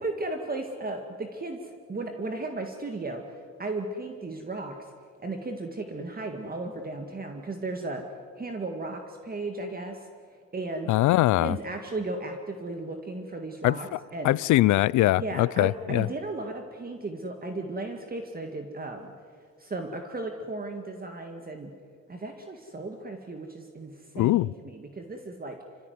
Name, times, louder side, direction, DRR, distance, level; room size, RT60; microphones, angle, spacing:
voice 1, 0.0-4.9 5.2-8.0 8.4-10.1 10.5-10.9 11.4-14.4 15.2-19.1 19.6-21.7 22.1-25.6, right 2 dB, 30° right, 2.1 m, -35 dB
voice 2, 10.9-11.6 13.6-14.0 14.2-16.1 24.2-24.5, left 16 dB, 75° left, 0.5 m, -22 dB
28.5 x 15.5 x 9.6 m
cardioid pair, 90°, 30 cm